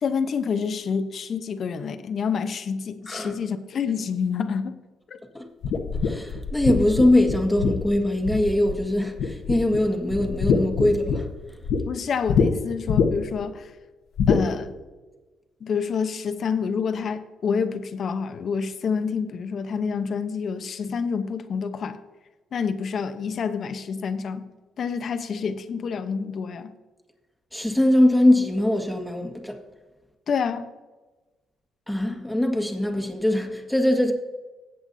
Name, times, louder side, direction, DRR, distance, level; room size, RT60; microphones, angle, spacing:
voice 1, 0.0-4.7 5.1-5.2 11.9-13.7 14.3-14.7 15.6-22.0 22.5-24.5 24.8-26.7 30.3-30.7, left 6 dB, 55° left, 0.8 m, -28 dB
voice 2, 3.1-3.4 5.3-5.5 6.0-11.3 27.5-29.6 31.9-34.1, left 1 dB, 5° left, 1.7 m, -22 dB
sound 1, 5.6-8.9 9.2-9.8 10.1-11.8 12.3-12.5 12.9-13.4 14.2-14.4, left 6 dB, 75° left, 1.1 m, -23 dB
18.5 x 8.0 x 2.7 m
cardioid pair, 90°, 0 cm